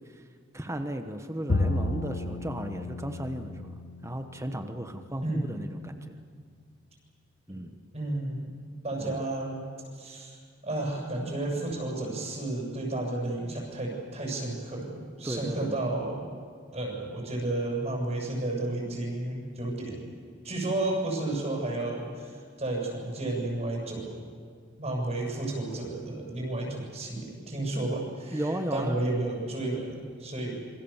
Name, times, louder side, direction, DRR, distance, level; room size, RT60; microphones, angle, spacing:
voice 1, 0.5-6.1 7.5-7.7 9.0-9.2 15.2-15.8 27.7-27.9 28.3-29.0, right 1 dB, 15° right, 7 dB, 1.1 m, -35 dB
Bowed string instrument, 1.5-4.9, left 2 dB, 70° left, 1.2 m, -32 dB
voice 2, 7.9-8.5 8.8-9.6 9.9-16.3 16.7-20.1 20.4-24.2 24.8-30.6, right 2 dB, 35° right, -1 dB, 7.6 m, -32 dB
27.5 x 24.5 x 7.3 m, 2.1 s
head